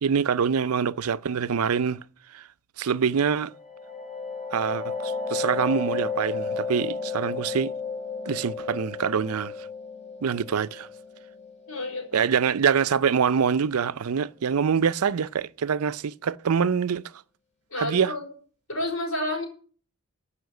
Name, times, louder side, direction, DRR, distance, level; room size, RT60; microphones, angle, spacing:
voice 1, 0.0-2.0 2.3-2.4 2.8-3.5 4.5-7.7 8.3-9.7 10.2-10.9 12.1-17.0 17.8-18.1, right 6 dB, 85° right, 0.5 m, -25 dB
sound 1, 3.5-13.0, left 4 dB, 30° left, 3.6 m, -33 dB
voice 2, 11.7-12.2 17.7-18.3 18.7-19.4, left 1 dB, 70° left, 4.8 m, -30 dB
14.0 x 5.7 x 8.2 m
head